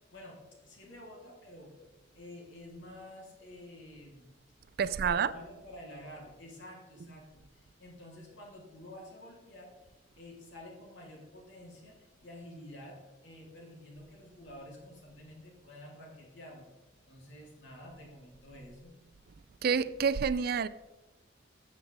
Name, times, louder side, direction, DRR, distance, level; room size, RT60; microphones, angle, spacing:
voice 1, 0.0-1.7 2.1-4.3 4.8-9.7 10.2-16.7 17.1-19.0, left 1 dB, 75° left, 3.4 m, -50 dB
voice 2, 4.8-5.3 19.6-20.7, right 6 dB, 55° right, 0.4 m, -28 dB
13.5 x 7.5 x 3.6 m
head